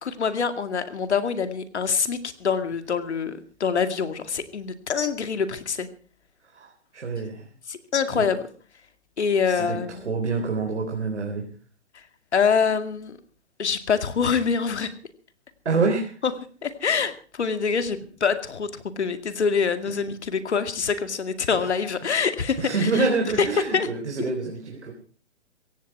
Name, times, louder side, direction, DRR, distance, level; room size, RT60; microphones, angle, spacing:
voice 1, 0.0-5.9 7.7-8.5 9.2-10.0 12.3-13.1 13.6-14.9 16.2-16.3 16.6-23.1 23.4-23.5 23.7-23.9, left 6 dB, 80° left, 9 dB, 2.3 m, -25 dB
voice 2, 6.5-7.5 8.1-8.2 9.4-11.5 15.7-16.2 21.5-21.7 22.6-24.9, right 4 dB, 85° right, 2 dB, 3.8 m, -27 dB
16.5 x 15.0 x 4.7 m, 0.41 s
hypercardioid pair, 145°, 34 cm